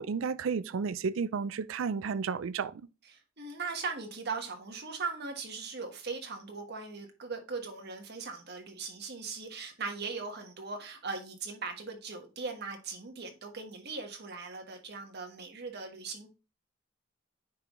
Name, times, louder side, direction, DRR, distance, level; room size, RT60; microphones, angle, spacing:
voice 1, 0.0-2.7, right 5 dB, 75° right, 0.4 m, -32 dB
voice 2, 3.0-16.3, right 4 dB, 55° right, 1.3 m, -39 dB
9.4 x 3.8 x 3.1 m
head